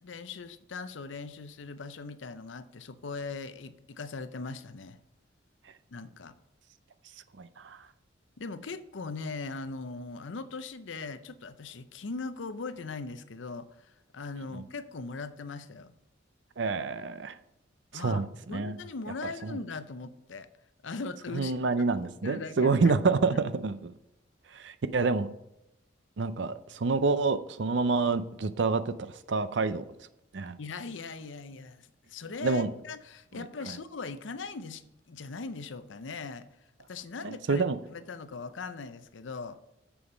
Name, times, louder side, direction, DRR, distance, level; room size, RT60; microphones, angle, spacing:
voice 1, 0.0-5.0 5.9-6.3 8.4-15.9 17.9-20.5 20.8-21.6 22.2-22.8 23.3-23.4 30.6-34.8 35.1-36.5 36.9-39.6, left 4 dB, 80° left, 12 dB, 0.6 m, -40 dB
voice 2, 7.4-7.9 14.5-14.6 16.6-17.4 17.9-18.8 19.4-19.6 21.3-23.9 24.5-25.3 26.2-29.8 30.3-30.6 32.4-32.7 33.3-33.8 37.2-37.8, right 4 dB, 70° right, 13 dB, 0.5 m, -28 dB
7.1 x 6.9 x 5.1 m, 0.90 s
head